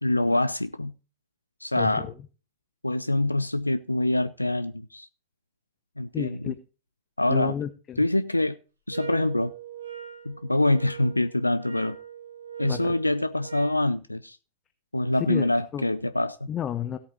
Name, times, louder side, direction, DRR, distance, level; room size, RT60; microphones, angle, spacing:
voice 1, 0.0-0.9 1.6-2.1 2.8-5.1 6.0-6.5 7.2-7.5 8.0-8.6 8.9-9.5 10.2-12.0 12.6-14.4 14.9-16.4, left 1 dB, 85° left, 0.4 m, -25 dB
voice 2, 1.8-2.1 6.1-6.6 7.3-8.1 12.6-12.9 15.2-15.9 16.5-17.0, left 9 dB, 25° left, 0.9 m, -32 dB
sound 1, 8.9-13.8, right 9 dB, 75° right, 3.1 m, -42 dB
17.0 x 8.4 x 2.9 m
figure-of-eight pair, 90°, 0 cm